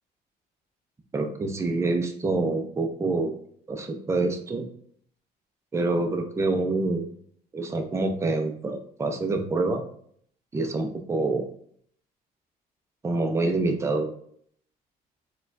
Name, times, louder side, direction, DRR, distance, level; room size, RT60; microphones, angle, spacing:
voice 1, 1.1-3.3 3.7-4.7 5.7-7.1 7.5-9.8 10.5-11.4 13.0-14.1, right 3 dB, 15° right, 4 dB, 0.5 m, -26 dB
4.2 x 2.3 x 2.6 m, 0.63 s
cardioid pair, 110°, 17 cm